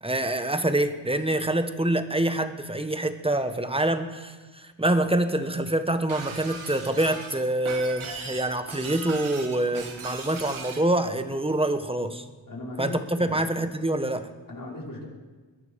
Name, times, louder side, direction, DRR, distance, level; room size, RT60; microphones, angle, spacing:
voice 1, 0.0-12.2 12.8-14.3, right 1 dB, 10° right, 9 dB, 1.4 m, -26 dB
Shatter, 6.1-10.9, right 5 dB, 85° right, 2.0 m, -38 dB
voice 2, 12.5-13.4 14.5-15.0, left 1 dB, 45° left, -2 dB, 4.8 m, -37 dB
21.5 x 11.0 x 5.3 m, 1.4 s
cardioid pair, 55°, 47 cm